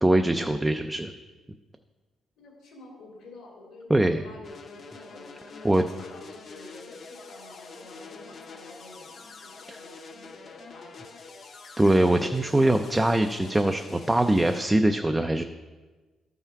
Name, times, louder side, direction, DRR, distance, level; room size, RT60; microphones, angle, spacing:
voice 1, 0.0-1.1 3.9-4.2 5.6-5.8 9.7-9.8 11.8-15.4, right 1 dB, 10° right, 6 dB, 0.3 m, -22 dB
voice 2, 2.4-11.1, left 2 dB, 75° left, -3 dB, 2.6 m, -48 dB
sound 1, 4.4-14.7, left 4 dB, 40° left, 0.7 m, -46 dB
12.5 x 5.7 x 4.6 m, 1.3 s
cardioid pair, 165°, 0 cm